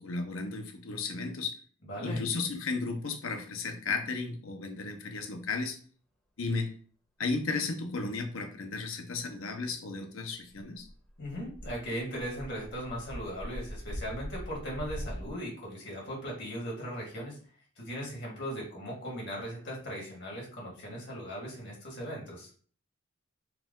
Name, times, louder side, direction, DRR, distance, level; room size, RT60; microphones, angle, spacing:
voice 1, 0.0-1.5 2.0-5.8 6.4-6.7 7.2-10.9, left 4 dB, 75° left, 5 dB, 0.8 m, -34 dB
voice 2, 1.8-2.2 11.2-17.4 17.8-22.5, equal, 55° left, -3 dB, 2.0 m, -38 dB
sound 1, 10.5-15.3, equal, 5° left, 1.2 m, -41 dB
4.7 x 2.3 x 3.7 m, 0.43 s
head